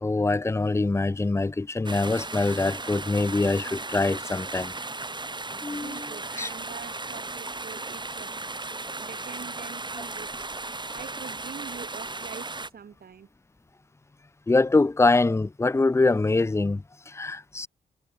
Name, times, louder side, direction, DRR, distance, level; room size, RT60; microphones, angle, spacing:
voice 1, 0.0-4.7 5.5-6.1 6.4-6.5 14.5-17.7, left 3 dB, 15° left, 0.6 m, -24 dB
sound 1, 1.8-12.7, right 3 dB, 25° right, 4.3 m, -36 dB
voice 2, 5.8-8.5 9.0-10.5 10.9-13.3, right 7 dB, 60° right, 7.0 m, -44 dB
supercardioid pair, 45°, 18 cm